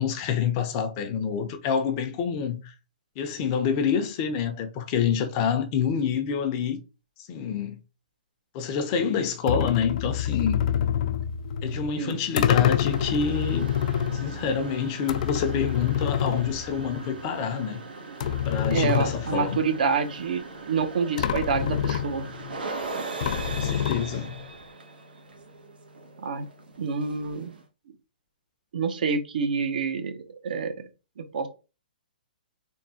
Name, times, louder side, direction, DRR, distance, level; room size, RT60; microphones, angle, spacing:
voice 1, 0.0-2.7 3.2-6.8 7.3-7.8 8.5-10.6 11.6-13.7 14.1-17.8 18.4-19.6 23.6-24.3, left 7 dB, 30° left, 0.7 m, -27 dB
sound 1, 9.5-17.3 17.6-17.7 18.2-19.8 20.8-20.9 21.2-22.6 23.2-24.5, left 10 dB, 50° left, 0.3 m, -27 dB
sound 2, 12.7-27.6, right 3 dB, 85° right, 1.1 m, -40 dB
voice 2, 18.7-20.4 20.7-22.3 26.2-26.5 26.8-27.5 28.7-30.7 31.2-31.5, right 5 dB, 65° right, 0.8 m, -27 dB
3.6 x 2.3 x 4.2 m
hypercardioid pair, 155°, 5 cm